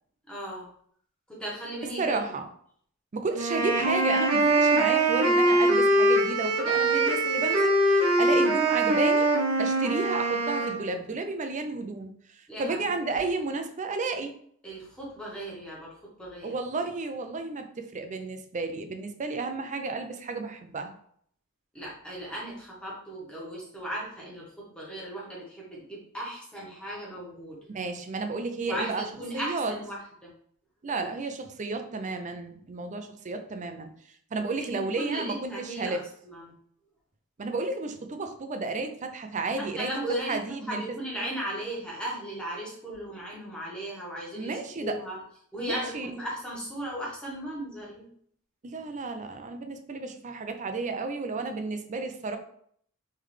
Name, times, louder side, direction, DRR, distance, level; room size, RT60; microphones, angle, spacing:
voice 1, 0.3-0.7 1.3-2.3 12.5-12.9 14.6-16.5 21.7-27.6 28.7-30.3 34.6-36.5 39.6-45.2 45.5-48.1, right 1 dB, 5° left, -5 dB, 1.2 m, -37 dB
voice 2, 1.8-2.5 3.1-9.3 9.6-14.4 16.4-20.9 27.6-29.0 29.3-29.8 30.8-33.9 34.3-36.0 37.4-39.9 40.2-40.8 44.3-45.0 45.6-46.1 48.6-52.4, right 3 dB, 35° right, 7 dB, 0.5 m, -32 dB
sound 1, 3.3-10.8, right 2 dB, 80° right, 0.9 m, -23 dB
3.7 x 3.2 x 3.2 m, 0.63 s
head